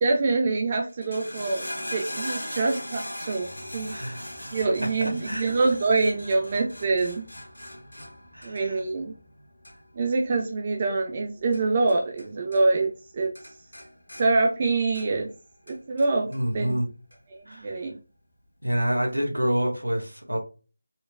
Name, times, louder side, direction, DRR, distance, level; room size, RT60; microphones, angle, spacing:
voice 1, 0.0-3.5 3.7-3.9 4.5-7.2 8.4-9.1 9.9-13.3 14.2-15.3 15.7-16.3 16.5-16.8 17.3-17.9, right 3 dB, 30° right, 2 dB, 0.4 m, -25 dB
sound 1, 0.9-12.3 12.5-13.1 13.4-15.3 15.7-16.4 17.1-17.2, left 1 dB, 70° left, 1.3 m, -40 dB
voice 2, 3.9-4.5 5.0-5.5 8.3-8.8 16.3-16.9 17.5-17.7 18.6-20.4, equal, 85° right, 2 dB, 1.2 m, -28 dB
4.4 x 2.2 x 2.2 m, 0.33 s
figure-of-eight pair, 160°, 0 cm